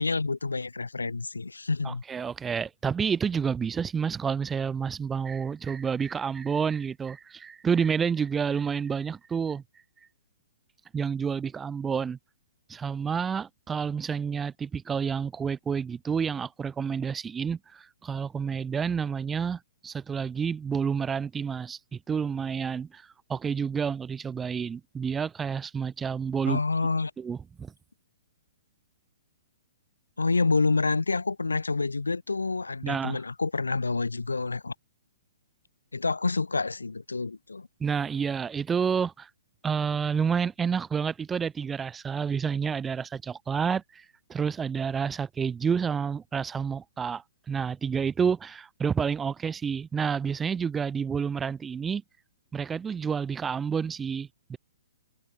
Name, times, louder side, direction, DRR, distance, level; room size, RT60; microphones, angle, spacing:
voice 1, 0.0-2.0 26.5-27.1 30.2-34.7 35.9-37.7, left 3 dB, 75° left, 1.1 m, -28 dB
voice 2, 1.8-9.6 10.9-12.2 12.7-26.6 27.2-27.7 32.8-33.2 37.8-39.3 39.6-52.0 52.5-54.6, right 6 dB, 10° right, 0.4 m, -29 dB
figure-of-eight pair, 120°, 0 cm